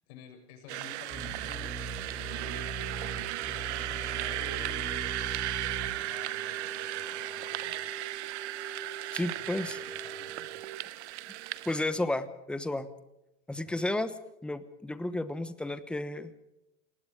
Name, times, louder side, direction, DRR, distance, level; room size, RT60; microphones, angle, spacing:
voice 1, 0.0-1.7 2.5-7.8 9.3-10.8 13.5-13.8, left 6 dB, 55° left, 4 dB, 7.2 m, -53 dB
sound 1, 0.7-11.8, right 16 dB, 65° right, 1.2 m, -36 dB
sound 2, 1.1-5.9, right 2 dB, 20° right, 7.6 m, -40 dB
Wind instrument woodwind instrument, 2.2-10.8, right 4 dB, 40° right, 4.2 m, -46 dB
voice 2, 9.1-9.8 11.7-12.9 13.5-14.1 14.4-16.3, left 1 dB, 5° left, 12 dB, 1.0 m, -32 dB
27.5 x 20.0 x 4.9 m, 0.91 s
supercardioid pair, 160°, 36 cm